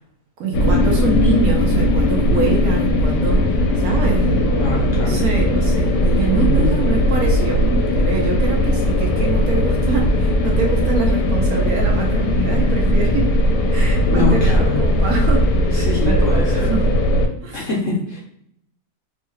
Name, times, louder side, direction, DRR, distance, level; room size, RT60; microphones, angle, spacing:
voice 1, 0.4-3.5 3.8-13.3 13.7-16.9 17.4-17.7, right 4 dB, 70° right, 1 dB, 1.0 m, -25 dB
sound 1, 0.5-17.3, left 1 dB, 80° left, 1.1 m, -18 dB
voice 2, 4.6-5.2 6.3-6.7 14.1-14.8 15.7-16.7 17.5-18.2, left 3 dB, 60° left, -3 dB, 0.8 m, -24 dB
3.1 x 2.2 x 3.0 m, 0.72 s
omnidirectional pair, 1.8 m